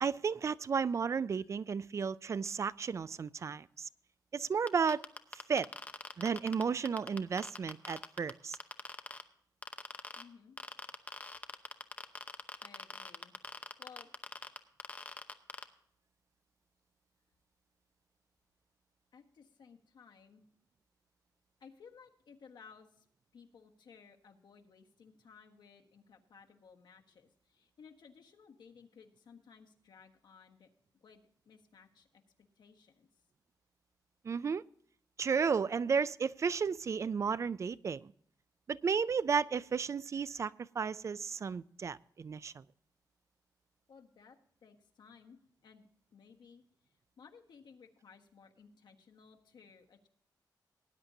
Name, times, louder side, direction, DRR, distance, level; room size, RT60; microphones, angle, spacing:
voice 1, 0.0-3.9 4.3-5.0 5.3-5.7 6.2-8.6 34.2-34.6 35.2-38.1 38.7-42.6, right 6 dB, 40° right, 18 dB, 0.3 m, -33 dB
sound 1, 4.7-9.2 9.6-10.2 10.6-15.6, left 3 dB, 20° left, 0.8 m, -43 dB
voice 2, 10.2-10.6 12.6-14.1 19.1-20.4 21.6-23.1 23.3-33.2 43.9-50.1, left 6 dB, 80° left, 3 dB, 1.5 m, -59 dB
19.0 x 10.0 x 2.7 m, 0.64 s
wide cardioid pair, 160°, 8 cm